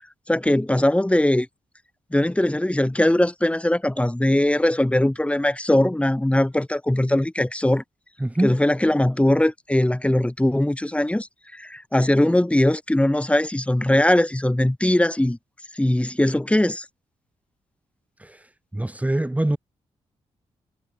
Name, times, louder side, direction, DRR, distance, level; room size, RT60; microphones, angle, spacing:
voice 1, 0.3-1.5 2.1-7.8 8.4-11.3 11.5-15.4 15.7-16.8, left 1 dB, 10° left, 3.5 m, -20 dB
voice 2, 8.2-8.6 18.2-18.4 18.7-19.6, right 1 dB, 10° right, 2.6 m, -24 dB
supercardioid pair, 60°, 12 cm